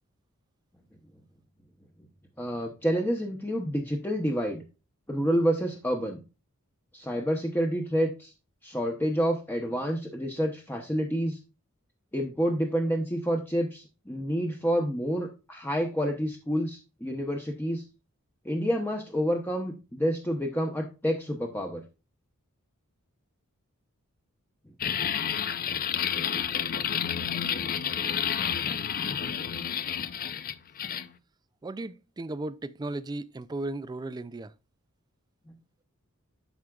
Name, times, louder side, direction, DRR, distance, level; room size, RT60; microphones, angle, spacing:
voice 1, 2.4-4.6 5.1-6.2 6.9-8.3 8.6-11.4 12.1-17.8 18.4-21.8, equal, 10° left, 0.8 m, -28 dB
sound 1, 24.8-31.1, left 8 dB, 40° left, 0.5 m, -30 dB
voice 2, 31.6-34.5, right 2 dB, 20° right, 0.3 m, -35 dB
12.0 x 4.9 x 2.4 m
head